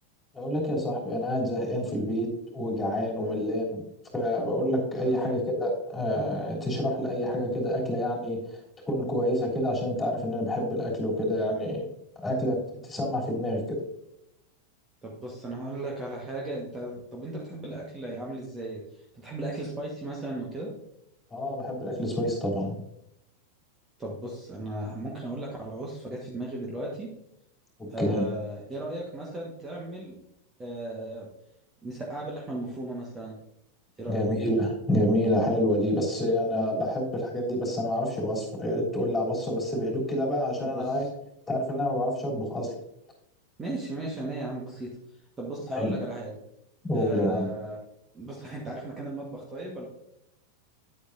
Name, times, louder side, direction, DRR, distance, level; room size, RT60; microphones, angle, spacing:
voice 1, 0.3-2.3 2.5-3.8 4.1-8.4 8.9-11.9 12.2-12.6 12.8-13.8 21.3-22.8 27.8-28.3 34.1-41.1 41.5-42.7 45.7-45.9 46.8-47.5, equal, 10° left, -2 dB, 3.3 m, -28 dB
voice 2, 15.0-18.8 19.2-20.7 24.0-27.1 27.9-30.2 30.6-31.3 31.8-33.4 34.0-34.2 40.6-41.1 43.6-45.0 45.4-46.4 46.9-47.8 48.1-49.9, right 2 dB, 15° right, -3 dB, 1.5 m, -36 dB
10.0 x 8.6 x 2.7 m, 0.80 s
figure-of-eight pair, 90°, 0 cm